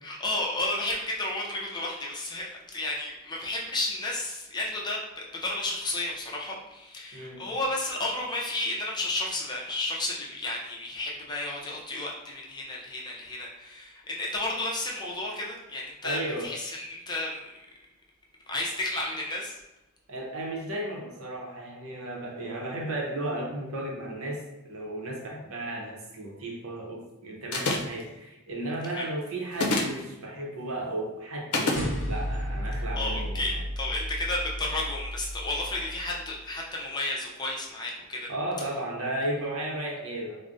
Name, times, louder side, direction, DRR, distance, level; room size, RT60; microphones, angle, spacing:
voice 1, 0.0-2.5 2.7-17.5 18.5-19.6 28.9-29.1 33.0-38.3, left 2 dB, 20° left, -2 dB, 0.5 m, -32 dB
voice 2, 7.1-7.4 16.0-16.5 20.1-33.4 38.3-40.4, right 1 dB, 70° right, -1 dB, 0.8 m, -34 dB
sound 1, 27.5-28.0 29.5-30.0 31.5-31.8, left 2 dB, 80° left, 0.6 m, -26 dB
sound 2, 31.7-36.4, equal, 35° left, 0.8 m, -34 dB
4.7 x 2.1 x 2.6 m, 1.0 s
head